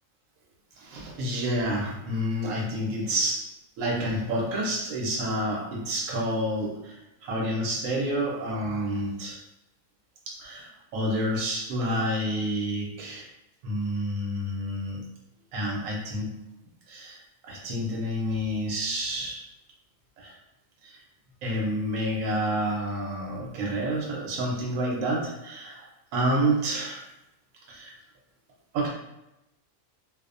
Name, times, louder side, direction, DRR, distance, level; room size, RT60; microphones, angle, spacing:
voice 1, 0.8-3.5 3.8-9.4 10.3-13.3 13.6-15.1 15.5-16.3 16.9-17.2 17.4-19.4 20.2-20.3 20.8-21.0 21.4-27.0 27.7-27.9 28.7-28.9, equal, 85° right, -3 dB, 1.1 m, -29 dB
2.6 x 2.0 x 2.4 m, 0.90 s
omnidirectional pair, 1.4 m